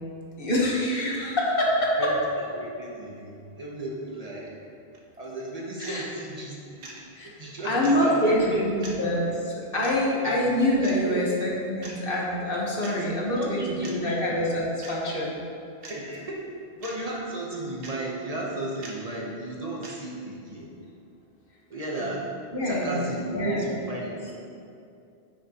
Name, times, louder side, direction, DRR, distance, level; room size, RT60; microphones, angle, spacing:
voice 1, 0.4-2.1 5.9-6.0 7.2-7.3 7.6-14.6 14.9-15.4 22.0-22.1 22.5-23.6, left 1 dB, 60° left, -4 dB, 1.5 m, -25 dB
voice 2, 2.0-4.7 5.2-6.9 7.2-8.9 10.2-10.4 11.0-11.3 12.8-13.0 13.3-14.2 15.9-20.7 21.7-22.3 22.6-24.3, right 2 dB, 40° right, -4 dB, 1.1 m, -34 dB
sound 1, 4.9-5.0 5.8-6.0 6.8-7.0 7.8-8.0 8.8-9.0 9.8-10.0 10.8-11.0 11.8-12.0 12.8-12.9 13.8-14.0 14.8-15.0 15.8-16.0 16.8-17.0 17.8-18.0 18.8-19.0 19.8-20.0, right 3 dB, 65° right, 1.2 m, -41 dB
10.0 x 6.4 x 3.0 m, 2.5 s
omnidirectional pair, 1.0 m